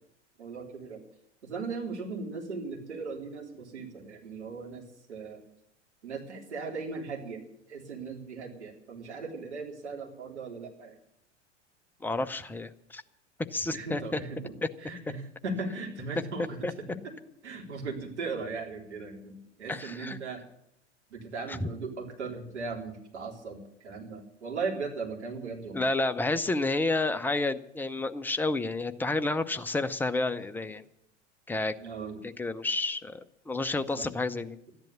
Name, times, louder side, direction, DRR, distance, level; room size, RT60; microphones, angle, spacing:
voice 1, 0.4-1.0 1.4-4.8 5.1-5.4 6.0-7.4 7.7-11.0 13.7-14.5 14.8-17.1 17.4-20.4 21.1-25.9 31.8-32.2 34.0-34.1, right 4 dB, 70° right, 0 dB, 3.8 m, -38 dB
voice 2, 12.0-13.0 13.5-14.2 16.6-16.7 19.7-20.2 21.5-21.6 25.7-30.8 31.5-31.7 32.2-34.6, left 2 dB, 5° left, 9 dB, 0.7 m, -30 dB
13.5 x 10.5 x 8.3 m, 0.77 s
figure-of-eight pair, 85°, 35 cm